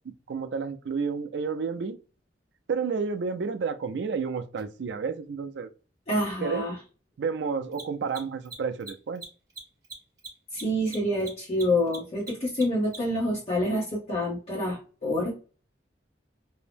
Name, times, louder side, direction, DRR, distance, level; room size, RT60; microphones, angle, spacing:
voice 1, 0.3-2.0 2.7-5.7 6.4-6.6 7.2-9.2, right 5 dB, 65° right, 0.4 m, -30 dB
Mechanisms, 4.6-4.7 7.6-13.2, right 3 dB, 20° right, 0.8 m, -42 dB
voice 2, 6.1-6.7 10.5-15.4, left 1 dB, 35° left, 0.8 m, -27 dB
2.7 x 2.0 x 3.3 m
head